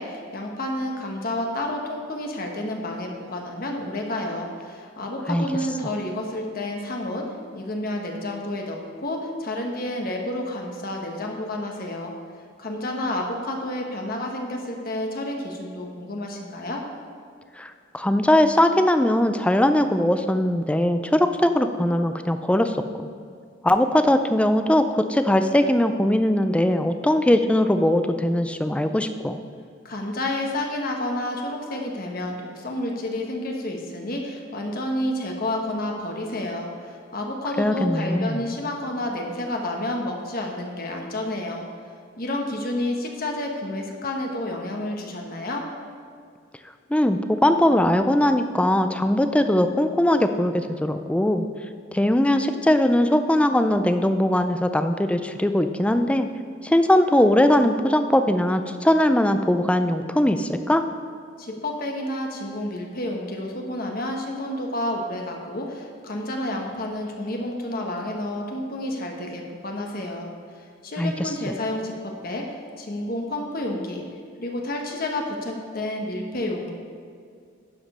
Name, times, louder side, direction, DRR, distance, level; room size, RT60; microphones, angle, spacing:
voice 1, 0.0-12.1 12.6-16.8 29.8-41.7 42.2-45.7 61.4-70.3 70.8-74.0 74.4-76.7, left 1 dB, 50° left, 1 dB, 1.1 m, -30 dB
voice 2, 17.6-23.1 23.6-29.4 37.6-38.4 46.9-51.5 51.9-56.3 56.6-60.8 71.0-71.3, left 1 dB, 5° left, 8 dB, 0.4 m, -20 dB
11.5 x 5.1 x 5.5 m, 2.2 s
head